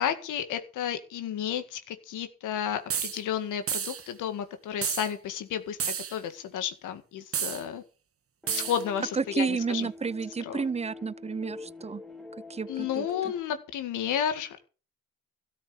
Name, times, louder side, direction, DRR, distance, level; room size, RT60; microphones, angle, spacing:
voice 1, 0.0-7.8 8.5-9.9 10.4-10.6 12.7-14.7, left 9 dB, 85° left, 1.9 m, -32 dB
sound 1, 2.9-3.2 3.7-4.1 4.8-5.1 5.8-6.2 7.3-7.6 8.5-8.8, right 8 dB, 50° right, 1.6 m, -31 dB
sound 2, 8.4-13.4, left 3 dB, ahead, 2.4 m, -45 dB
voice 2, 9.1-12.0 12.5-13.1, right 5 dB, 20° right, 0.5 m, -31 dB
13.0 x 6.6 x 8.7 m
cardioid pair, 90°, 30 cm